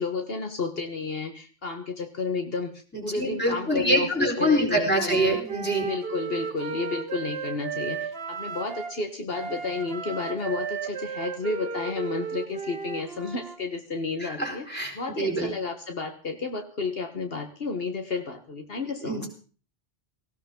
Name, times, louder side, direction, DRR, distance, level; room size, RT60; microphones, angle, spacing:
voice 1, 0.0-2.7 3.0-5.2 5.8-19.3, left 4 dB, 70° left, 5 dB, 1.6 m, -31 dB
voice 2, 2.9-5.9 14.2-15.5 19.0-19.3, right 1 dB, 10° left, 2 dB, 4.3 m, -25 dB
Wind instrument woodwind instrument, 4.9-9.0 9.3-13.6, right 5 dB, 70° right, 1.7 m, -34 dB
18.0 x 16.0 x 3.8 m, 0.40 s
omnidirectional pair, 1.0 m